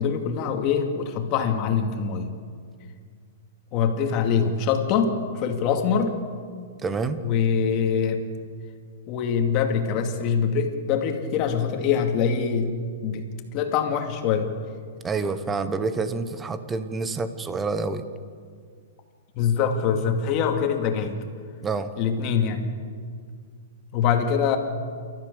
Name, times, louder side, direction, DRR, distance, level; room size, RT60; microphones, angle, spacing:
voice 1, 0.0-2.3 3.7-6.2 7.2-8.3 9.1-12.7 13.0-14.5 19.3-21.2 22.0-22.7 23.9-24.6, left 6 dB, 35° left, 4 dB, 2.5 m, -24 dB
voice 2, 6.8-7.2 15.0-18.1 21.6-21.9, right 4 dB, 15° right, 11 dB, 1.1 m, -28 dB
29.0 x 13.5 x 7.0 m, 2.1 s
hypercardioid pair, 145°, 0 cm